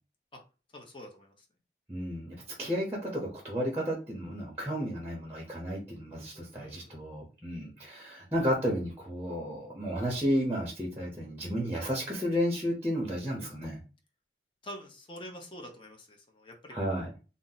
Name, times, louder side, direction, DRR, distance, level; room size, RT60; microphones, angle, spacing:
voice 1, 0.7-1.3 6.5-6.9 14.6-17.2, equal, 30° left, 2 dB, 0.6 m, -46 dB
voice 2, 1.9-13.8 16.7-17.1, equal, 10° right, -2 dB, 0.7 m, -32 dB
2.6 x 2.0 x 3.8 m, 0.34 s
head